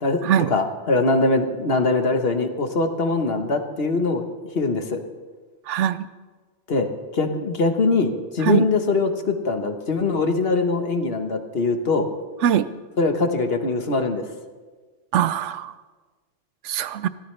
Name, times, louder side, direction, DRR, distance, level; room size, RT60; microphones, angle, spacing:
voice 1, 0.0-4.2 4.5-5.0 6.7-6.9 7.1-12.1 13.0-14.3, left 3 dB, 55° left, 6 dB, 1.5 m, -22 dB
voice 2, 5.7-6.1 8.4-8.7 12.4-12.7 15.1-15.7 16.6-17.1, right 9 dB, 80° right, 14 dB, 1.0 m, -21 dB
23.0 x 16.0 x 3.3 m, 1.4 s
omnidirectional pair, 1.2 m